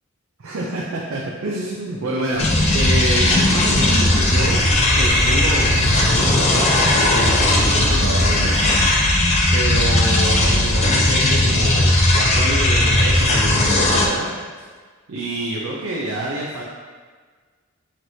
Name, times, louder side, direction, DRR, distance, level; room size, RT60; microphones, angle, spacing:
voice 1, 0.4-2.5 2.7-4.6 4.9-14.3 14.6-14.7 15.1-16.6, right 1 dB, 80° right, -3 dB, 0.5 m, -27 dB
sound 1, 2.3-8.8, equal, 5° left, 1.2 m, -30 dB
sound 2, 2.4-14.1, left 1 dB, 30° left, 0.5 m, -17 dB
5.8 x 3.1 x 2.7 m, 1.5 s
head